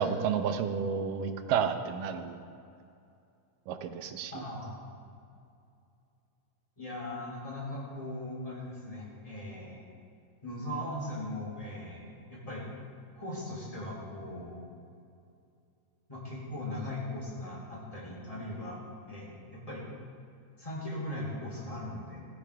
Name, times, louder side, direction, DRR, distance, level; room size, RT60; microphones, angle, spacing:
voice 1, 0.0-2.4 3.7-4.3, right 7 dB, 80° right, 8 dB, 2.4 m, -31 dB
voice 2, 4.3-4.9 6.8-9.8 10.4-12.7 13.1-14.6 16.1-18.8 19.1-19.9 20.6-22.2, left 1 dB, 10° left, -5 dB, 3.1 m, -39 dB
15.5 x 14.0 x 3.5 m, 2.5 s
omnidirectional pair, 3.8 m